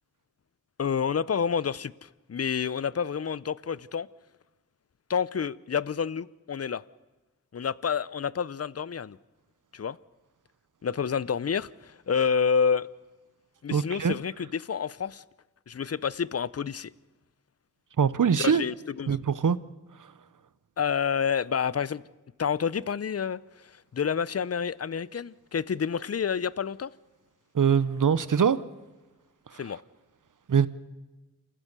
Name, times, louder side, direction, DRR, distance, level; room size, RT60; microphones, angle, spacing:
voice 1, 0.8-4.1 5.1-6.8 7.5-9.2 9.7-10.0 10.8-12.9 13.6-15.2 15.7-16.9 18.4-19.2 20.8-22.0 22.4-23.4 23.7-26.9 29.6-29.8, left 6 dB, 50° left, 0.6 m, -29 dB
voice 2, 13.7-14.2 18.0-18.6 19.1-19.6 27.5-28.6 30.5-30.7, right 7 dB, 75° right, 0.9 m, -23 dB
28.5 x 15.0 x 6.8 m
cardioid pair, 45°, 31 cm